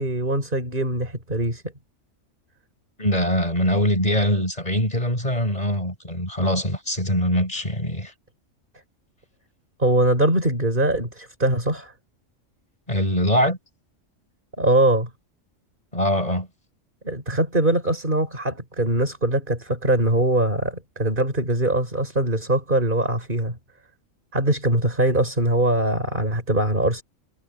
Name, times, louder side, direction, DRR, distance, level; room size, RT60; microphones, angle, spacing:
voice 1, 0.0-1.6 9.8-11.9 14.6-15.1 17.0-23.6 24.3-27.0, right 1 dB, 40° right, 5.8 m, -22 dB
voice 2, 3.0-8.1 12.9-13.6 15.9-16.5, equal, 30° left, 7.9 m, -23 dB
omnidirectional pair, 1.4 m